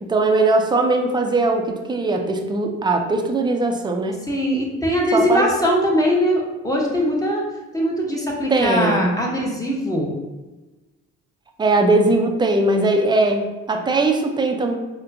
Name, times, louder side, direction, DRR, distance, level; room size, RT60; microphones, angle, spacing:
voice 1, 0.0-4.2 5.1-5.5 8.5-9.1 11.6-14.8, right 2 dB, 15° right, 3 dB, 0.4 m, -20 dB
voice 2, 4.3-7.4 7.7-10.1, equal, 10° left, -2 dB, 0.8 m, -21 dB
4.2 x 2.2 x 2.5 m, 1.1 s
cardioid pair, 90°, 30 cm